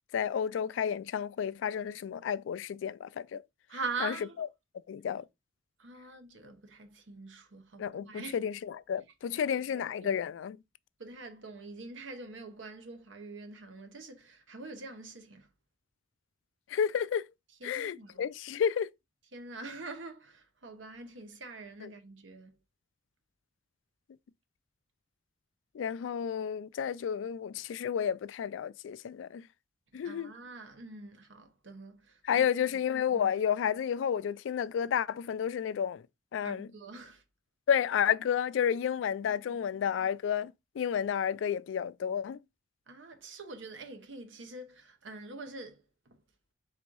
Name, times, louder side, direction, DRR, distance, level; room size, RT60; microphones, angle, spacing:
voice 1, 0.1-3.4 4.0-4.5 4.9-5.2 7.8-10.6 16.7-17.3 17.6-18.9 21.8-21.9 25.7-29.4 29.9-30.3 32.2-36.0 36.3-36.7 37.7-42.4, left 8 dB, 80° left, 0.3 m, -31 dB
voice 2, 3.7-4.4 5.8-8.4 9.7-10.2 11.0-15.5 17.6-18.2 19.3-22.5 30.0-32.5 33.1-33.3 36.4-37.2 39.2-39.6 42.9-45.8, right 3 dB, 80° right, 0.9 m, -44 dB
4.1 x 2.6 x 4.6 m
head